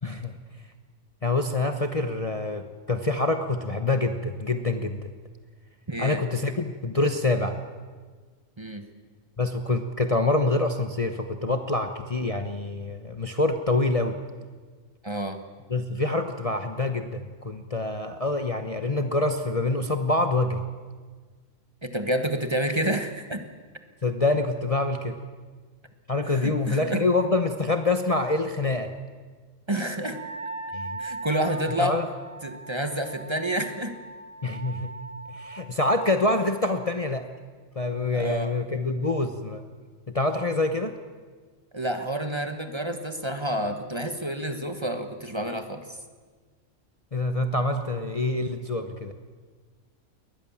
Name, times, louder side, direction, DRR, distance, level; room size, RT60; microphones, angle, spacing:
voice 1, 0.0-0.3 1.2-5.1 6.0-7.6 9.4-14.2 15.7-20.6 24.0-25.2 26.1-28.9 30.7-31.0 31.8-32.1 34.4-34.9 35.3-37.2 37.8-39.7 40.1-40.9 47.1-49.1, left 2 dB, 30° left, 6 dB, 1.0 m, -26 dB
voice 2, 5.9-6.2 8.6-8.8 15.0-15.4 21.8-23.4 26.3-27.0 29.7-30.2 31.0-32.0 32.4-33.9 38.1-38.5 41.7-45.8, right 1 dB, 20° right, 7 dB, 1.4 m, -29 dB
Wind instrument woodwind instrument, 30.1-35.6, right 3 dB, 70° right, 3.4 m, -39 dB
21.5 x 19.5 x 7.2 m, 1.5 s
omnidirectional pair, 1.4 m